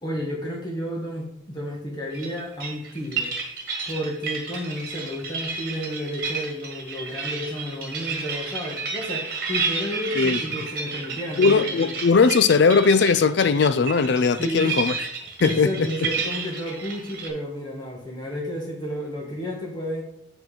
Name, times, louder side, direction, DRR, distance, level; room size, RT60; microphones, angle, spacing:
voice 1, 0.0-3.3 3.9-12.0 14.4-14.7 15.4-20.0, equal, 20° left, 1.6 m, -31 dB
sound 1, 2.1-17.3, right 5 dB, 45° right, 1.7 m, -31 dB
voice 2, 11.4-15.0 15.4-16.1, left 5 dB, 60° left, 0.4 m, -19 dB
8.4 x 4.5 x 5.0 m
head